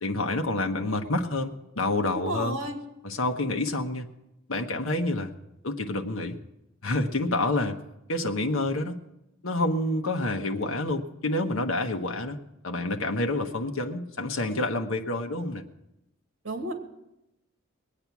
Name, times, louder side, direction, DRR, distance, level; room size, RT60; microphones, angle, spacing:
voice 1, 0.0-1.5 1.8-2.6 3.0-4.1 4.5-5.3 5.6-6.4 6.8-7.8 8.1-9.0 9.4-12.4 12.6-15.6, left 2 dB, 70° left, 4 dB, 1.1 m, -28 dB
voice 2, 2.1-2.8 16.4-16.7, right 1 dB, 65° right, 4 dB, 2.2 m, -31 dB
21.0 x 8.8 x 6.0 m, 0.89 s
head